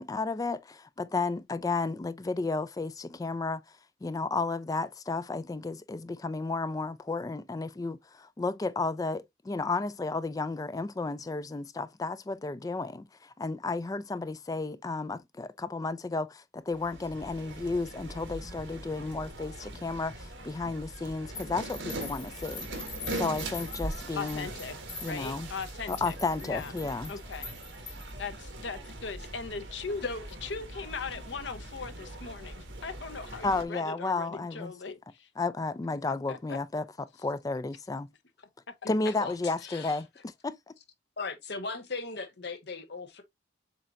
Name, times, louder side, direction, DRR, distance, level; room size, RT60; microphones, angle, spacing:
voice 1, 0.0-3.6 4.0-22.7 23.1-24.5 25.0-25.5 25.9-27.1 33.4-34.7 35.4-36.9 37.2-38.1 38.9-40.7, left 3 dB, 20° left, 0.3 m, -33 dB
sound 1, 16.7-33.6, right 1 dB, 75° right, 1.3 m, -41 dB
sound 2, 21.4-28.2, left 4 dB, 45° left, 1.7 m, -44 dB
voice 2, 24.2-24.7 25.0-26.7 27.1-27.5 28.2-30.0 30.4-35.3 36.3-36.6 38.8-38.9, left 5 dB, 75° left, 0.8 m, -39 dB
voice 3, 39.6-40.0 41.2-43.2, left 3 dB, 60° left, 1.0 m, -37 dB
7.4 x 2.8 x 2.5 m
head